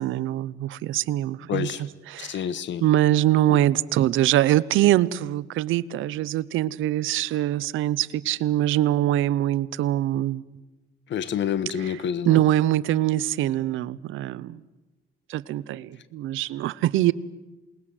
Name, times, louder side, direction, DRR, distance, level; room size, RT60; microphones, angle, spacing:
voice 1, 0.0-1.7 2.1-2.4 2.8-10.4 11.8-12.0 12.2-14.6 15.3-17.1, right 13 dB, 85° right, 0.8 m, -23 dB
voice 2, 1.5-1.8 2.2-2.8 3.5-3.6 11.1-12.4, left 8 dB, 70° left, 1.2 m, -28 dB
27.5 x 20.5 x 7.7 m
cardioid pair, 90°, 20 cm